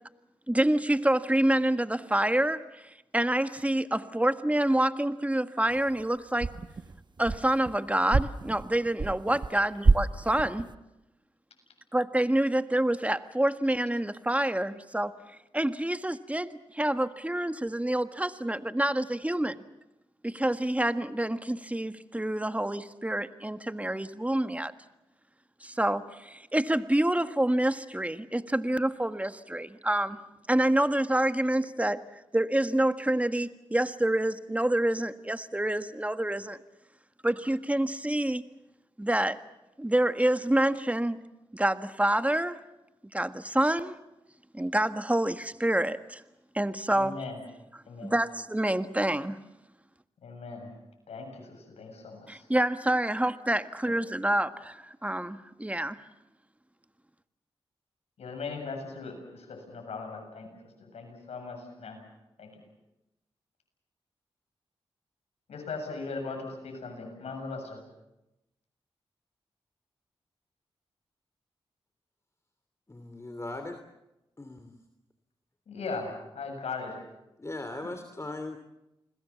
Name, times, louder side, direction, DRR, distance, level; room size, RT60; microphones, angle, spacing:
voice 1, 0.5-6.5 7.2-10.7 11.9-15.1 15.5-19.6 20.2-24.7 25.6-30.2 30.5-36.6 37.2-38.4 39.0-39.4 39.8-41.2 41.5-42.6 43.1-44.0 44.5-46.2 46.5-47.2 48.0-49.4 52.3-56.0, right 1 dB, 15° right, 10 dB, 1.6 m, -27 dB
sound 1, 5.7-6.0 6.4-7.8 8.1-9.5 9.8-10.8, right 3 dB, 45° right, 1.1 m, -28 dB
voice 2, 46.9-47.4 47.9-48.1 50.2-50.7 51.1-52.5 53.9-54.0 58.2-62.0 62.4-62.6 65.5-67.8 75.7-77.0, left 4 dB, 85° left, 4 dB, 7.4 m, -39 dB
voice 3, 72.9-73.8 74.4-74.7 77.4-78.6, left 2 dB, 25° left, 7 dB, 3.0 m, -38 dB
29.0 x 21.5 x 7.2 m, 0.93 s
cardioid pair, 45°, 11 cm